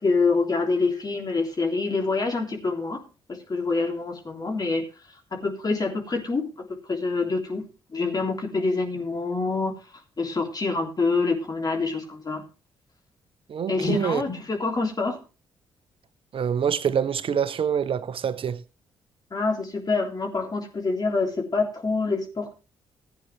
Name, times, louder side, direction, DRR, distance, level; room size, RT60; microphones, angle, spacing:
voice 1, 0.0-3.0 3.3-4.8 5.3-6.5 6.9-7.6 7.9-9.8 10.2-12.4 13.7-15.2 19.3-22.5, left 3 dB, 35° left, 3.5 m, -26 dB
voice 2, 13.5-14.2 16.3-18.6, right 8 dB, 50° right, 1.0 m, -25 dB
16.0 x 9.4 x 3.2 m
hypercardioid pair, 45°, 12 cm